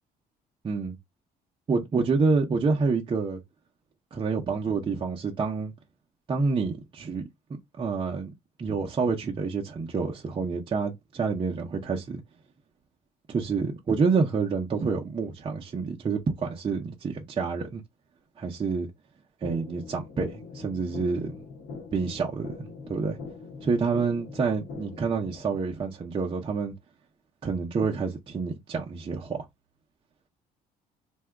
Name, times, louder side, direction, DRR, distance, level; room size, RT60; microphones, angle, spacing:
voice 1, 0.6-1.0 1.7-3.4 4.1-5.7 6.3-7.2 7.8-8.3 8.6-12.2 13.3-17.8 18.4-18.9 19.4-21.4 21.9-23.2 23.6-26.7 27.4-29.5, right 4 dB, 30° right, 0.6 m, -28 dB
sound 1, 19.4-25.4, left 4 dB, 75° left, 1.1 m, -42 dB
2.7 x 2.3 x 3.4 m
cardioid pair, 110°, 17 cm